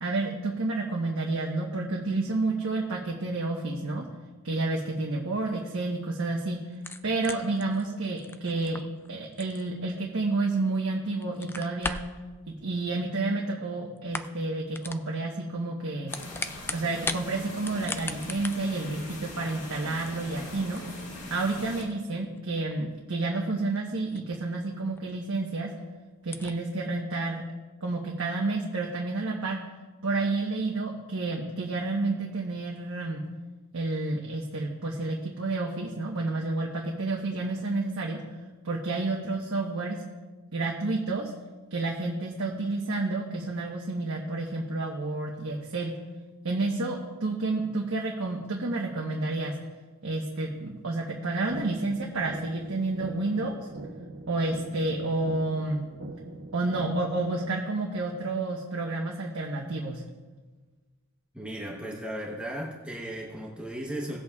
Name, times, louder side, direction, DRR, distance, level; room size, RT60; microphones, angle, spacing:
voice 1, 0.0-4.1 4.4-6.6 7.0-8.8 9.1-12.0 12.5-16.1 16.7-20.8 21.3-25.7 26.2-27.4 27.8-29.6 30.0-33.2 33.7-38.2 38.6-40.0 40.5-41.3 41.7-45.9 46.4-49.5 50.0-53.6 54.3-55.8 56.5-60.0, right 2 dB, 65° right, -2 dB, 1.2 m, -30 dB
sound 1, 6.7-10.8 11.1-12.2 13.2-13.7 14.0-14.5 14.7-15.1 15.9-17.2 17.6-24.6 24.9-25.0 25.5-25.6 25.8-25.9 26.2-26.5, left 3 dB, 10° left, 0.3 m, -39 dB
sound 2, 16.1-21.8, left 1 dB, 85° left, 3.4 m, -42 dB
sound 3, 51.5-57.5, right 2 dB, 90° right, 1.2 m, -42 dB
voice 2, 61.3-64.2, right 1 dB, 5° right, -3 dB, 1.0 m, -36 dB
18.0 x 8.2 x 2.4 m, 1.3 s
head